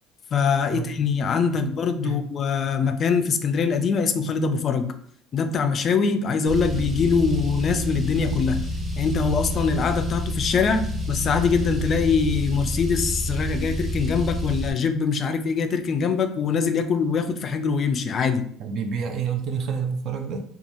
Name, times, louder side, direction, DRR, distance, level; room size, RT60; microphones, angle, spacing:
voice 1, 0.3-4.9 5.3-8.7 9.0-18.5, left 5 dB, 45° left, 7 dB, 0.3 m, -23 dB
Car, 6.5-14.7, equal, 15° right, 0.6 m, -28 dB
voice 2, 18.6-20.4, right 6 dB, 55° right, 5 dB, 0.4 m, -28 dB
2.9 x 2.3 x 2.6 m, 0.62 s
cardioid pair, 115°, 0 cm